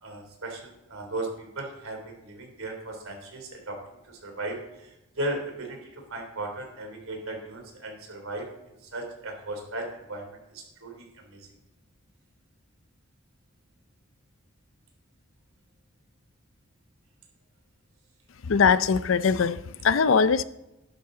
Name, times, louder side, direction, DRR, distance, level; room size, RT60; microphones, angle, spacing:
voice 1, 0.0-3.8 4.1-5.8 6.1-8.5 8.9-11.5, right 2 dB, 85° right, 3 dB, 3.1 m, -36 dB
voice 2, 18.4-20.4, left 5 dB, 65° left, 15 dB, 0.5 m, -21 dB
12.0 x 11.5 x 3.8 m, 0.94 s
head